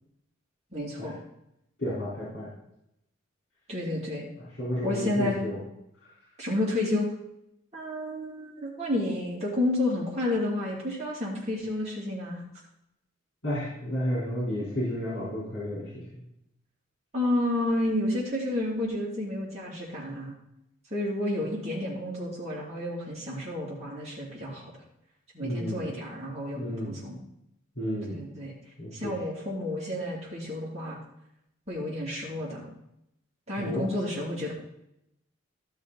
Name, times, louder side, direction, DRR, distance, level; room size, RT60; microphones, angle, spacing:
voice 1, 0.7-1.1 3.7-4.3 4.8-5.4 6.4-7.1 7.7-12.4 17.1-20.3 20.9-24.7 25.3-27.2 28.1-28.5 28.9-31.0 31.7-32.7 33.5-34.5, left 1 dB, 30° right, -6 dB, 2.8 m, -30 dB
voice 2, 1.8-2.5 4.4-5.6 13.4-16.2 25.4-25.9 26.5-27.0 27.8-28.2 28.8-29.1 33.6-33.8, equal, 60° left, -8 dB, 4.2 m, -32 dB
13.5 x 6.2 x 4.1 m, 0.81 s
head